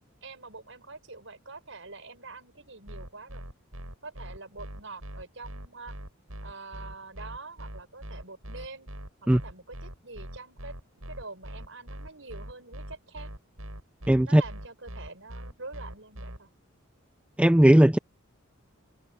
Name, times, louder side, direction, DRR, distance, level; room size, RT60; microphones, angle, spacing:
voice 1, 0.2-3.4 4.0-6.0 6.4-8.9 9.2-10.8 11.1-13.3 14.2-16.5, right 3 dB, 65° right, 6.6 m, -45 dB
sound 1, 2.9-16.4, equal, 90° right, 8.0 m, -41 dB
voice 2, 14.1-14.4 17.4-18.0, right 1 dB, 5° right, 0.3 m, -17 dB
open air
head